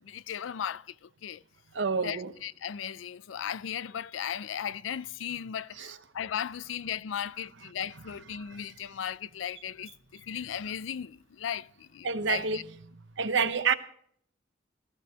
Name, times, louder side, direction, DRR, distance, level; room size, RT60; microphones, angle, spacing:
voice 1, 0.0-1.4 2.0-12.6, left 9 dB, 85° left, 0.4 m, -36 dB
voice 2, 1.7-2.3 5.8-5.9 12.0-12.6 13.2-13.7, right 5 dB, 70° right, 0.9 m, -27 dB
16.5 x 14.5 x 2.9 m
head